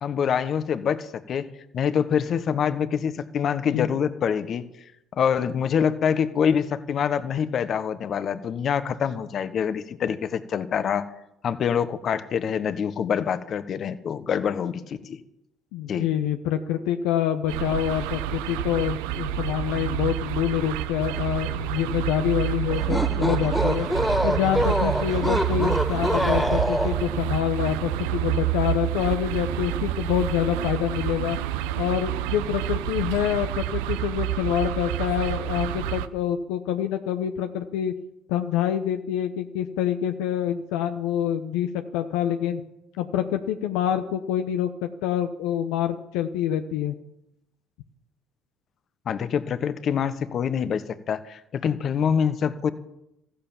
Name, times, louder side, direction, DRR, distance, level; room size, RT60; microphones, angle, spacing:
voice 1, 0.0-4.6 5.1-11.1 11.4-15.2 15.9-16.1 49.1-52.7, left 7 dB, 50° left, 13 dB, 1.2 m, -25 dB
voice 2, 15.7-23.9 24.2-31.4 31.8-37.9 38.3-42.6 43.0-47.0, left 10 dB, 75° left, 7 dB, 0.8 m, -26 dB
sound 1, 17.5-36.1, right 14 dB, 80° right, 0.7 m, -28 dB
sound 2, 22.7-27.2, left 1 dB, 5° left, 0.8 m, -25 dB
14.5 x 11.5 x 7.1 m, 0.83 s
hypercardioid pair, 65°, 0 cm